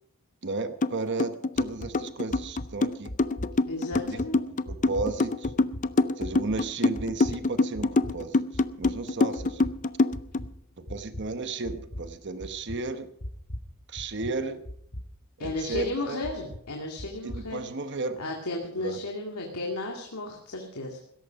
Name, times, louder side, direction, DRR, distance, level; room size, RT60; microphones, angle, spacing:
voice 1, 0.4-3.1 4.5-5.5 6.2-9.7 10.8-13.1 13.9-14.6 15.4-16.2 17.2-18.2 18.8-19.0, right 3 dB, 50° right, 9 dB, 1.0 m, -34 dB
sound 1, 0.8-0.9 1.2-10.4, left 3 dB, 35° left, 0.5 m, -25 dB
sound 2, 1.6-1.9 2.3-2.7 3.1-3.6 3.9-4.3 4.7-5.1 5.4-5.8 6.2-6.6 6.9-7.4 7.8-8.1 8.5-8.9 9.4-9.7 10.1-10.5 10.9-11.2 11.6-12.1 12.4-12.8 13.2-13.7 14.0-14.4 14.7-15.0 15.4-15.9 16.2-16.6 17.0-17.4, left 1 dB, 55° left, 2.2 m, -38 dB
voice 2, 3.7-4.5 15.4-17.6 18.2-21.0, left 2 dB, 85° left, 0 dB, 2.3 m, -34 dB
16.5 x 14.0 x 5.2 m, 0.71 s
head